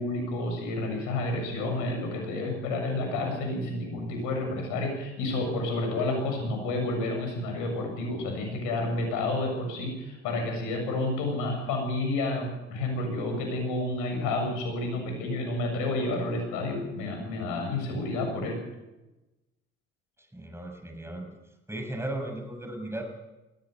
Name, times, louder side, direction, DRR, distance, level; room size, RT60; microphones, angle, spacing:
voice 1, 0.0-18.6, left 2 dB, 80° left, 3 dB, 7.6 m, -30 dB
voice 2, 20.3-21.3 21.7-23.0, right 1 dB, 10° right, 4 dB, 6.8 m, -36 dB
20.5 x 15.0 x 8.4 m, 1.0 s
hypercardioid pair, 60°, 31 cm